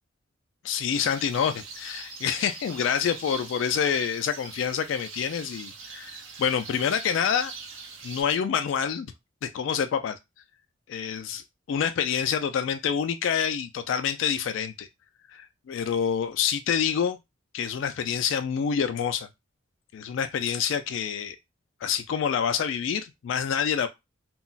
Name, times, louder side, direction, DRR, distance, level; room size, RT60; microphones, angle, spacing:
voice 1, 0.6-7.5 8.0-9.1 9.4-10.2 10.9-14.9 15.3-17.2 17.5-19.3 19.9-21.4 21.8-23.9, left 7 dB, 70° left, 0.3 m, -27 dB
sound 1, 0.9-8.2, right 5 dB, 80° right, 0.7 m, -42 dB
2.3 x 2.0 x 3.8 m
head